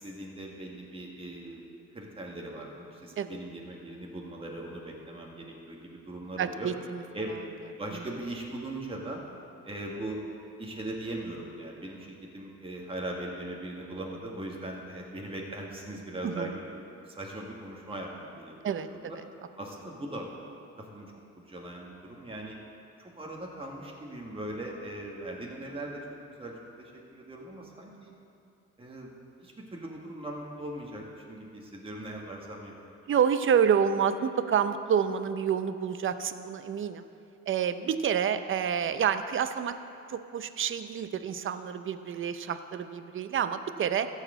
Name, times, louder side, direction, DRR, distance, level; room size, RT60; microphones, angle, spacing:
voice 1, 0.0-1.6 1.9-6.7 7.1-7.4 7.8-9.2 9.6-10.2 10.6-19.2 19.6-20.3 20.8-22.6 23.0-28.1 28.8-29.1 29.4-32.9, right 1 dB, 20° right, -2 dB, 1.7 m, -40 dB
voice 2, 6.4-7.0 7.9-8.0 16.2-16.5 18.6-18.9 19.2-19.3 33.1-37.1 37.5-39.8 40.1-44.1, right 8 dB, 40° right, 11 dB, 0.6 m, -28 dB
13.5 x 4.9 x 7.8 m, 2.6 s
cardioid pair, 90°, 30 cm